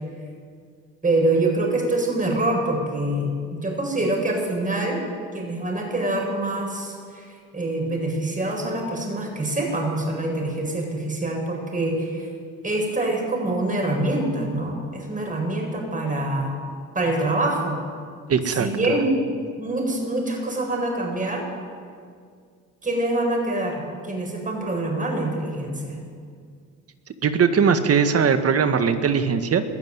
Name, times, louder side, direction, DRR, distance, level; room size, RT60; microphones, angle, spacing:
voice 1, 1.0-5.0 5.3-12.3 12.6-16.5 16.9-17.8 18.5-19.2 19.6-21.5 22.8-26.0, right 2 dB, 25° right, 1 dB, 7.6 m, -25 dB
voice 2, 18.3-18.9 27.2-29.6, right 6 dB, 45° right, 8 dB, 1.8 m, -20 dB
21.0 x 14.0 x 9.7 m, 2.1 s
supercardioid pair, 75°, 33 cm